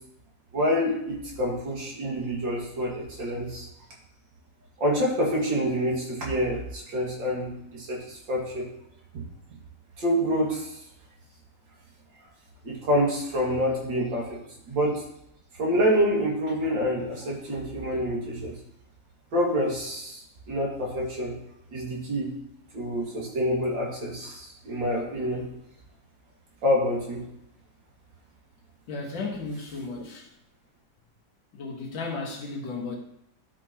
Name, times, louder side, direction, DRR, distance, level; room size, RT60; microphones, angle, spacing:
voice 1, 0.5-3.7 4.8-8.7 9.1-9.2 10.0-10.7 12.6-14.3 14.7-15.0 15.6-18.5 19.3-20.2 20.5-21.3 21.7-22.3 22.7-25.4 26.6-27.2, equal, 70° right, -3 dB, 2.7 m, -27 dB
voice 2, 28.9-30.3 31.5-33.0, left 3 dB, 75° left, -1 dB, 2.2 m, -34 dB
11.5 x 5.3 x 2.9 m, 0.78 s
omnidirectional pair, 2.1 m